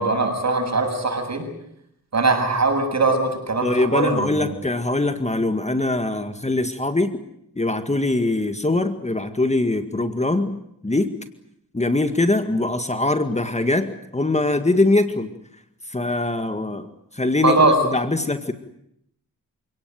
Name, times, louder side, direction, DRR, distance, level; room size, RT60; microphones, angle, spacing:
voice 1, 0.0-1.5 2.1-4.4 17.4-17.7, right 3 dB, 50° right, 5 dB, 7.8 m, -21 dB
voice 2, 3.6-7.2 7.6-10.6 10.8-11.1 11.7-15.3 15.9-16.9 17.1-18.5, left 2 dB, 20° left, 9 dB, 1.9 m, -22 dB
28.0 x 18.0 x 9.5 m, 0.76 s
cardioid pair, 70°, 35 cm